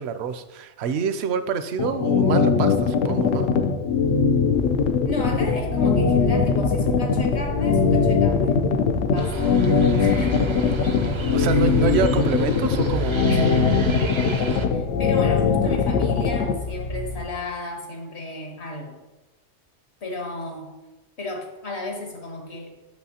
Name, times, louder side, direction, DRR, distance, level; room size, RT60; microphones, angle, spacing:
voice 1, 0.0-3.5 11.3-13.2, right 6 dB, 70° right, 10 dB, 0.8 m, -26 dB
sound 1, 1.8-16.5, left 5 dB, 90° left, 0.9 m, -20 dB
sound 2, 4.5-17.3, left 3 dB, 45° left, 0.4 m, -32 dB
voice 2, 5.0-8.6 9.1-9.6 10.0-11.7 13.3-13.7 14.2-18.9 20.0-20.7 21.2-22.8, left 1 dB, 70° left, 2 dB, 1.5 m, -34 dB
sound 3, 9.1-14.7, right 3 dB, 45° right, 0.4 m, -32 dB
8.1 x 6.5 x 2.8 m, 1.1 s
omnidirectional pair, 1.2 m